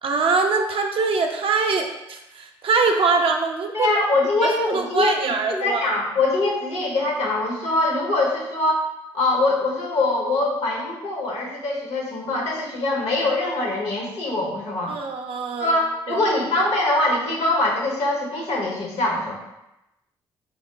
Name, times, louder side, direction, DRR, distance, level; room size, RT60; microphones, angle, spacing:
voice 1, 0.0-3.9 4.7-5.9 14.9-15.8 16.1-16.2, right 4 dB, 50° right, 3 dB, 0.5 m, -23 dB
voice 2, 3.7-8.8 9.1-15.0 15.6-19.3, left 2 dB, 65° left, -1 dB, 0.9 m, -23 dB
3.4 x 2.1 x 3.7 m, 0.91 s
hypercardioid pair, 45°, 12 cm